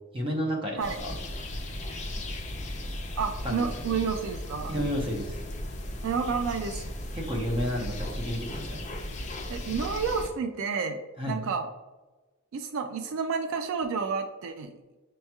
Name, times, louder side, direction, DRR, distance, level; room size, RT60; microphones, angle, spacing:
voice 1, 0.1-1.2 2.1-2.2 3.4-4.0 4.7-5.4 7.1-8.8 11.2-11.4, equal, 25° right, -1 dB, 0.8 m, -31 dB
sound 1, 0.8-10.3, left 1 dB, 35° left, 0.5 m, -36 dB
voice 2, 3.2-4.7 6.0-6.8 9.5-11.0 11.3-11.7 12.5-14.7, right 5 dB, 60° right, 6 dB, 0.3 m, -30 dB
6.3 x 2.9 x 2.3 m, 1.2 s
head